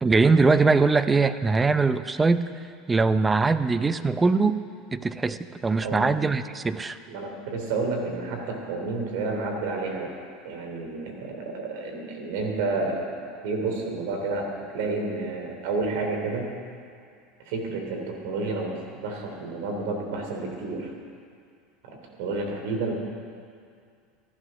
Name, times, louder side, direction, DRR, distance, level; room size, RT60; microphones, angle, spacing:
voice 1, 0.0-2.4 2.9-4.6 4.9-7.0, right 4 dB, 20° right, 12 dB, 0.7 m, -21 dB
voice 2, 5.8-6.2 7.1-10.1 10.4-14.5 14.7-16.5 17.4-20.9 21.8-22.9, right 3 dB, 70° right, 2 dB, 3.2 m, -30 dB
14.5 x 11.5 x 6.4 m, 2.2 s
hypercardioid pair, 95°, 0 cm